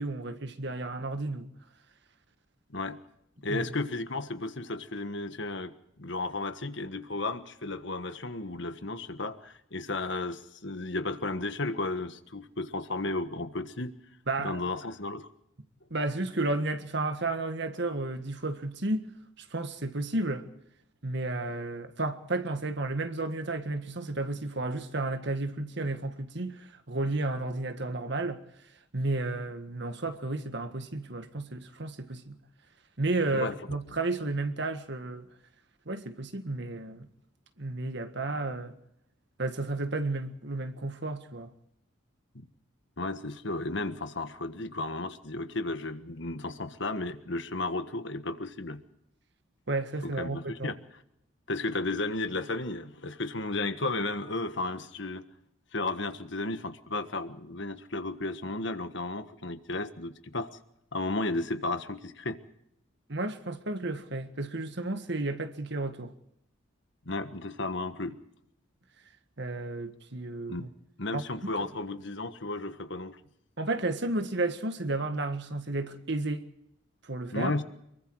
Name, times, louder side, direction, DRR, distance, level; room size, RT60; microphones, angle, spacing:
voice 1, 0.0-1.5 3.5-3.7 14.3-14.6 15.9-19.1 19.4-20.5 21.0-28.4 28.9-32.4 33.0-35.3 35.9-37.1 37.6-38.7 39.4-41.5 49.7-50.7 63.1-66.1 69.4-70.7 71.1-71.2 71.6-71.7 73.6-76.5 77.0-77.5, right 2 dB, 55° right, 1.7 m, -32 dB
voice 2, 2.7-3.0 3.4-5.7 6.0-13.9 14.4-15.3 33.3-33.5 42.3-42.5 43.0-48.8 50.0-50.7 51.5-55.3 55.7-60.5 60.9-62.4 67.0-68.2 70.5-70.7 71.0-73.2 77.3-77.6, left 2 dB, 60° left, 1.5 m, -33 dB
25.0 x 23.0 x 4.8 m
head